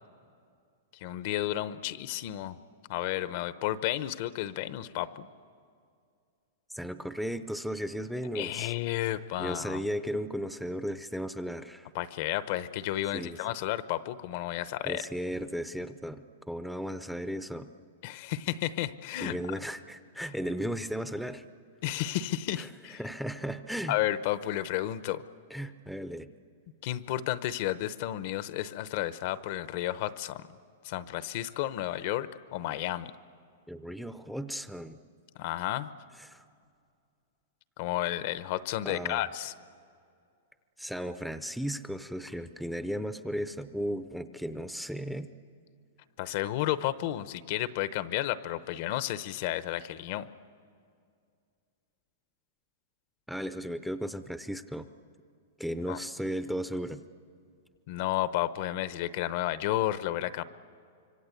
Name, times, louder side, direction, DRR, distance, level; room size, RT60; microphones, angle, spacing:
voice 1, 1.0-2.6 2.9-5.3 8.3-9.8 11.9-15.0 18.0-19.4 21.8-23.0 23.9-25.2 26.8-30.4 30.8-33.1 35.4-35.9 37.8-39.5 46.2-50.3 55.9-56.0 57.9-60.4, left 14 dB, 50° left, 14 dB, 0.8 m, -32 dB
voice 2, 6.7-8.7 9.4-11.9 13.1-13.4 14.9-17.7 19.2-21.4 22.6-22.7 23.0-24.0 25.5-26.3 33.7-35.0 36.2-36.4 38.8-39.3 40.8-45.3 53.3-54.9 55.6-57.0, equal, ahead, 10 dB, 0.6 m, -35 dB
25.5 x 23.5 x 8.3 m, 2.3 s
supercardioid pair, 155°, 0 cm